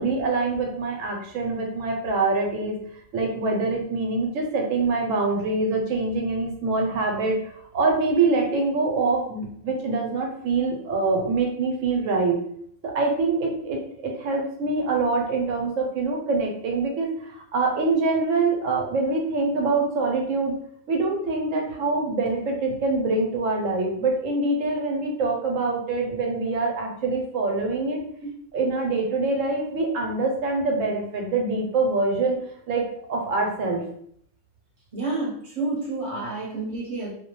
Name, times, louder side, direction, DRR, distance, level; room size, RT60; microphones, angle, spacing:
voice 1, 0.0-2.8 3.1-12.4 12.8-20.5 20.9-28.0 28.5-32.4 32.7-33.8, right 3 dB, 80° right, 1 dB, 1.0 m, -25 dB
voice 2, 34.9-37.1, right 3 dB, 30° right, -5 dB, 0.7 m, -29 dB
2.3 x 2.1 x 2.9 m, 0.65 s
omnidirectional pair, 1.4 m